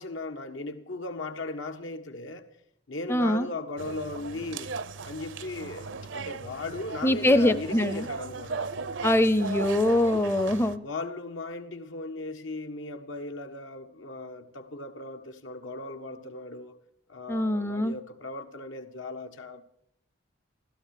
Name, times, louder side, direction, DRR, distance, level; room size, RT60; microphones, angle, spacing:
voice 1, 0.0-2.4 2.9-4.7 5.0-8.7 10.8-16.8 17.1-19.6, left 2 dB, 85° left, 1.6 m, -37 dB
voice 2, 3.1-3.5 7.0-8.1 9.0-10.8 17.3-18.0, left 1 dB, 10° left, 0.5 m, -23 dB
sound 1, 3.8-10.8, right 4 dB, 75° right, 0.6 m, -37 dB
16.0 x 13.0 x 6.6 m
head